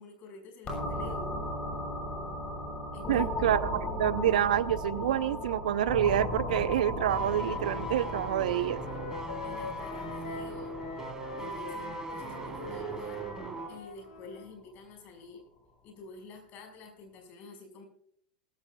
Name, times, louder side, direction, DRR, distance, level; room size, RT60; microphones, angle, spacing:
voice 1, 0.0-1.4 2.9-3.3 9.4-10.8 11.3-13.2 13.7-15.4 15.8-17.8, left 3 dB, 40° left, 3 dB, 5.3 m, -48 dB
sound 1, 0.7-14.2, left 1 dB, 25° left, 7.3 m, -37 dB
voice 2, 3.1-8.8, right 11 dB, 70° right, 16 dB, 0.6 m, -27 dB
sound 2, 7.1-13.8 14.0-14.2, right 2 dB, 15° right, 3.8 m, -39 dB
Wind instrument woodwind instrument, 7.2-14.5, left 4 dB, 70° left, 2.5 m, -45 dB
20.5 x 15.0 x 2.3 m, 0.64 s
figure-of-eight pair, 90°, 4 cm